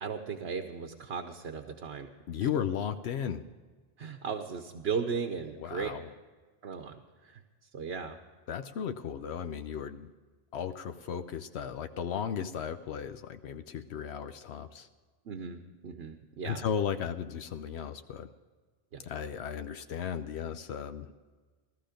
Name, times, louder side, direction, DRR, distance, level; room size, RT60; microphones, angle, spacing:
voice 1, 0.0-2.1 2.4-2.5 4.0-5.9 6.6-7.4 7.7-8.2 15.2-16.6 18.9-19.0, right 6 dB, 75° right, 5 dB, 1.1 m, -36 dB
voice 2, 2.3-3.4 5.6-6.1 8.5-10.1 10.5-14.9 16.4-18.3 19.0-21.1, left 8 dB, 80° left, 8 dB, 0.9 m, -35 dB
15.5 x 13.5 x 5.1 m, 1.4 s
omnidirectional pair, 1.1 m